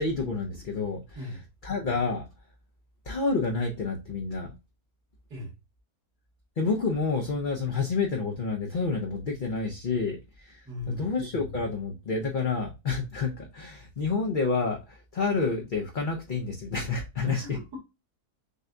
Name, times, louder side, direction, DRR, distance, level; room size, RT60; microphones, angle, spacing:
voice 1, 0.0-1.0 1.6-2.3 3.1-4.5 6.6-17.4, left 4 dB, 50° left, 0.6 m, -29 dB
voice 2, 1.1-1.5 5.3-5.5 10.6-11.1 17.2-17.8, left 1 dB, 90° right, 2.4 m, -37 dB
6.4 x 2.3 x 2.5 m
omnidirectional pair, 1.7 m